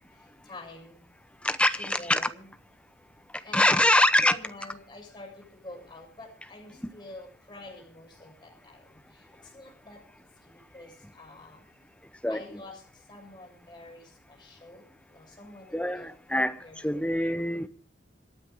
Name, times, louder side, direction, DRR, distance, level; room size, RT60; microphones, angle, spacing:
voice 1, 0.5-1.0 1.8-2.5 3.4-8.8 9.5-10.0 10.7-11.6 12.3-12.8 13.1-14.1 14.4-14.8 15.1-17.0, left 2 dB, 25° left, 6.9 m, -46 dB
voice 2, 1.4-2.3 3.3-4.3 6.8-6.9 12.2-12.6 15.7-17.7, left 1 dB, 5° left, 0.8 m, -25 dB
26.5 x 9.3 x 3.6 m
head